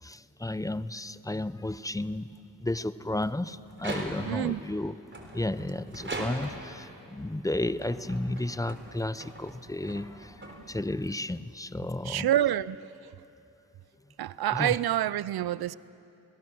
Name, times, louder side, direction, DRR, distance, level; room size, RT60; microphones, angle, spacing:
voice 1, 0.0-2.3 2.6-12.3 14.5-14.8, left 1 dB, 10° left, 0.6 m, -33 dB
sound 1, 3.7-4.5 5.1-6.8 7.5-11.0, right 2 dB, 30° right, 3.7 m, -41 dB
voice 2, 4.2-4.6 12.0-13.1 14.2-15.7, right 12 dB, 80° right, 0.5 m, -28 dB
26.5 x 21.5 x 6.3 m
cardioid pair, 60°, 37 cm